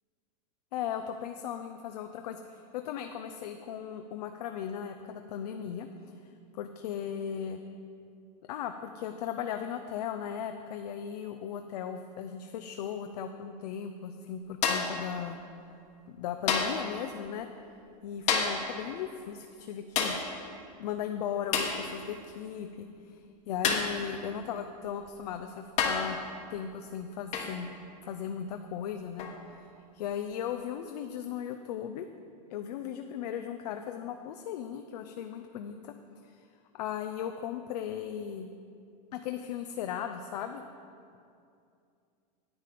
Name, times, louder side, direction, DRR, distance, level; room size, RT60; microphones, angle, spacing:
voice 1, 0.7-5.9 6.5-7.6 8.5-15.4 16.1-17.5 18.0-20.2 20.8-26.2 26.5-27.7 28.0-29.3 29.5-29.7 29.9-32.1 32.5-35.9 36.2-36.4 36.7-38.5 39.1-40.6, left 8 dB, 75° left, 7 dB, 0.6 m, -37 dB
sound 1, 14.6-15.0 16.5-16.9 18.3-18.7 20.0-20.3 21.5-21.8 23.6-24.0 25.1-25.2 25.8-26.1 27.3-27.6 29.2-29.4, left 5 dB, 35° left, 1.1 m, -28 dB
9.5 x 8.4 x 5.0 m, 2.5 s
supercardioid pair, 150°, 21 cm